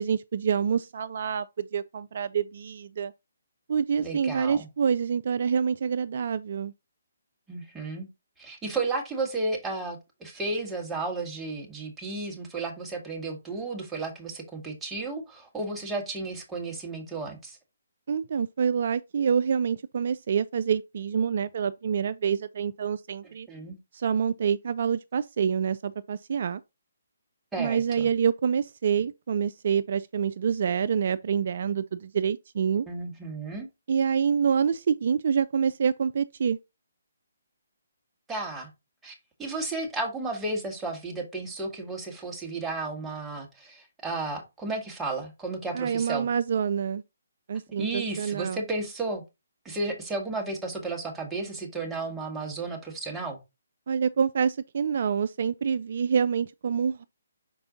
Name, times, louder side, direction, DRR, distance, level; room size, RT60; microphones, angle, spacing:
voice 1, 0.0-3.1 3.7-6.7 18.1-23.5 23.9-26.6 27.6-32.9 33.9-36.6 45.7-47.0 47.5-48.6 53.9-57.0, right 7 dB, 55° right, 0.3 m, -27 dB
voice 2, 4.0-4.7 7.5-8.1 8.4-17.6 23.5-23.8 27.5-28.1 32.9-33.7 38.3-38.7 39.0-46.3 47.8-49.2 49.6-53.4, right 3 dB, 10° right, 1.6 m, -33 dB
5.9 x 4.3 x 3.8 m
hypercardioid pair, 150°, 0 cm